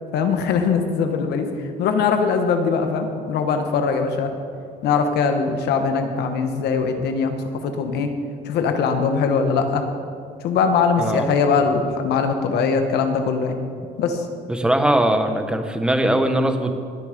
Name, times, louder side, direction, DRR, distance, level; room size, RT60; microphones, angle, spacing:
voice 1, 0.1-1.5 1.8-4.3 4.8-8.1 8.4-9.8 10.4-13.6 14.0-14.3, left 5 dB, 75° left, 6 dB, 1.3 m, -21 dB
voice 2, 14.5-16.8, right 1 dB, 5° right, 6 dB, 1.1 m, -20 dB
19.5 x 6.7 x 5.1 m, 2.3 s
cardioid pair, 110°, 17 cm